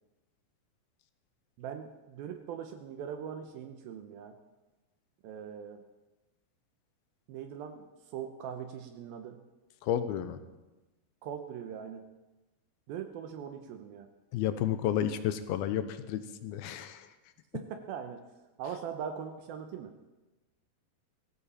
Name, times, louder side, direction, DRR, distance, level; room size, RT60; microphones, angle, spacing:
voice 1, 1.6-4.4 5.2-5.8 7.3-7.8 8.1-9.4 11.2-12.0 12.9-14.1 17.5-18.3 18.6-19.9, right 8 dB, 80° right, 6 dB, 2.6 m, -41 dB
voice 2, 9.8-10.4 14.3-17.1, left 10 dB, 80° left, 10 dB, 2.7 m, -31 dB
18.5 x 14.5 x 4.3 m, 1.1 s
omnidirectional pair, 4.4 m